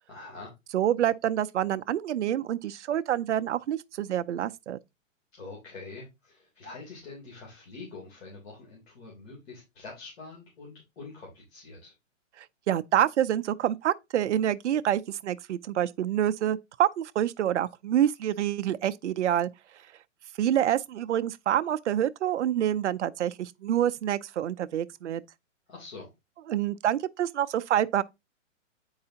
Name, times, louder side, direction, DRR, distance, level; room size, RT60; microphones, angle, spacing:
voice 1, 0.1-0.5 5.3-11.9 25.7-26.1, left 3 dB, 55° left, 3.2 m, -45 dB
voice 2, 0.7-4.8 12.4-19.5 20.4-25.2 26.5-28.0, right 11 dB, 65° right, 0.6 m, -27 dB
8.7 x 4.7 x 2.8 m
hypercardioid pair, 170°, 38 cm